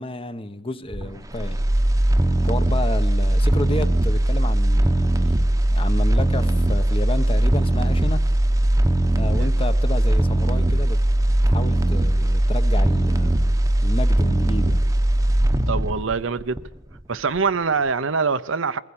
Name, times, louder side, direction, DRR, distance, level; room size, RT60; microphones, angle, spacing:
voice 1, 0.0-1.6 2.4-5.3 5.7-8.2 9.2-11.0 11.5-13.5 13.8-14.8, left 1 dB, 25° left, 1.1 m, -30 dB
sound 1, 0.9-17.0 17.4-17.5, right 1 dB, 15° right, 1.0 m, -20 dB
voice 2, 15.7-16.6 17.1-18.8, right 5 dB, 70° right, 0.9 m, -24 dB
23.0 x 15.5 x 8.7 m
head